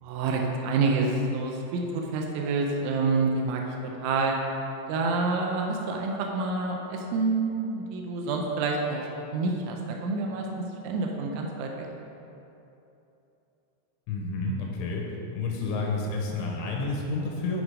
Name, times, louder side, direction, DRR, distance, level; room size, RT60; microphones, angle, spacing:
voice 1, 0.0-3.6 4.0-4.4 4.9-11.9, right 3 dB, 90° right, 1 dB, 3.2 m, -28 dB
voice 2, 14.1-15.0 15.3-17.6, left 3 dB, 85° left, -1 dB, 3.4 m, -30 dB
9.6 x 4.7 x 5.0 m, 2.9 s
omnidirectional pair, 5.3 m